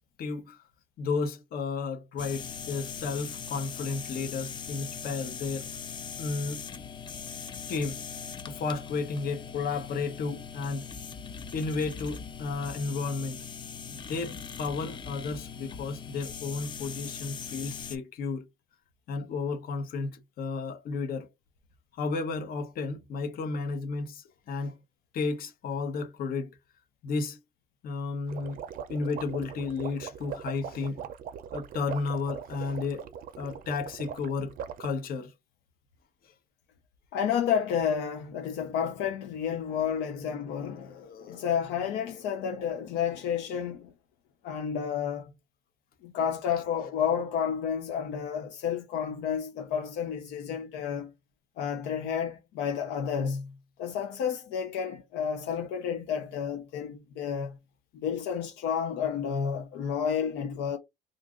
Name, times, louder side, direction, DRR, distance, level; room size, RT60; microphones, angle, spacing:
voice 1, 0.2-0.6 1.0-5.7 6.2-6.6 7.7-8.0 8.5-10.9 11.5-13.4 13.9-18.4 19.1-21.3 22.0-24.8 25.1-26.5 27.0-27.4 27.8-28.6 28.9-31.0 31.5-33.1 33.4-34.5 34.8-35.3 40.1-40.2 40.8-41.4, left 4 dB, 60° left, 0.9 m, -33 dB
sound 1, 2.2-18.0, left 6 dB, 25° left, 0.4 m, -41 dB
sound 2, 28.3-34.9, right 8 dB, 60° right, 0.5 m, -41 dB
voice 2, 37.1-43.9 44.4-45.3 46.0-51.1 51.6-53.5 53.8-57.6 57.9-60.8, left 7 dB, 85° left, 0.6 m, -31 dB
2.6 x 2.4 x 3.5 m
cardioid pair, 110°, 17 cm